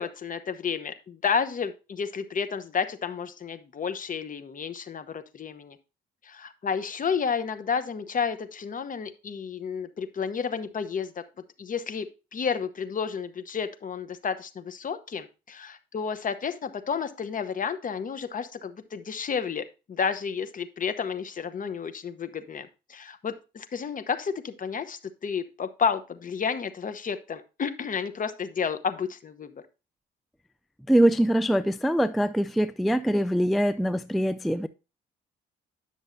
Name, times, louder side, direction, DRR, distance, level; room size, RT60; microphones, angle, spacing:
voice 1, 0.0-5.8 6.2-11.2 11.6-29.6, left 6 dB, 40° left, 0.9 m, -31 dB
voice 2, 30.9-34.7, right 1 dB, ahead, 0.3 m, -23 dB
10.0 x 6.3 x 2.6 m
cardioid pair, 90°, 20 cm